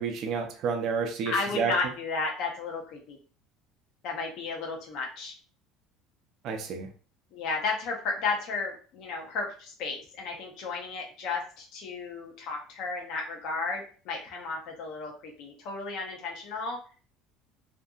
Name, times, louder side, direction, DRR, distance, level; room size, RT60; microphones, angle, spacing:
voice 1, 0.0-1.7 6.4-6.9, right 5 dB, 40° right, 3 dB, 0.4 m, -30 dB
voice 2, 1.3-3.2 4.0-5.3 7.3-16.8, left 4 dB, 55° left, 0 dB, 0.6 m, -33 dB
2.6 x 2.5 x 2.3 m, 0.40 s
cardioid pair, 165°, 0 cm